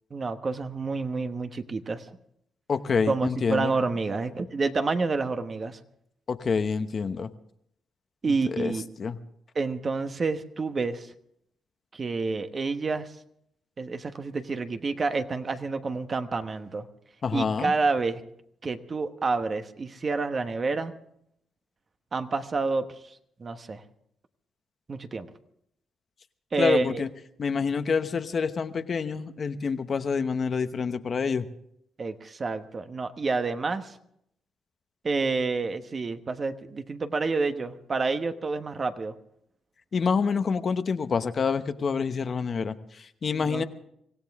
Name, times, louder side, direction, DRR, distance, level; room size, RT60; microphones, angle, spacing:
voice 1, 0.1-2.2 3.1-5.8 8.2-8.9 9.5-11.1 11.9-13.1 13.8-16.9 17.3-18.2 18.6-20.9 22.1-23.8 24.9-25.3 26.5-27.0 32.0-34.0 35.0-39.1 43.3-43.6, right 4 dB, 35° right, 8 dB, 1.1 m, -29 dB
voice 2, 2.7-3.7 6.3-7.3 8.5-8.7 9.0-9.2 17.2-17.7 26.6-27.1 27.4-31.5 39.9-43.6, left 5 dB, 45° left, 9 dB, 0.9 m, -27 dB
25.0 x 16.0 x 3.6 m, 0.73 s
cardioid pair, 95°, 0 cm